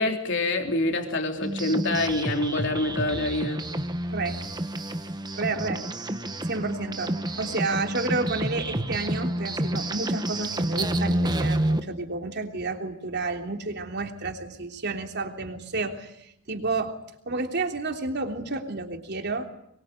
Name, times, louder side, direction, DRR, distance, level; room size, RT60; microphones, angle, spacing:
voice 1, 0.0-3.6, left 2 dB, 65° left, 4 dB, 3.6 m, -26 dB
sound 1, 1.4-11.8, right 1 dB, 20° right, 1.5 m, -29 dB
voice 2, 4.1-4.4 5.3-5.8 6.4-17.0 17.2-19.5, right 3 dB, 55° right, 4 dB, 3.4 m, -31 dB
24.0 x 23.0 x 9.4 m, 0.76 s
head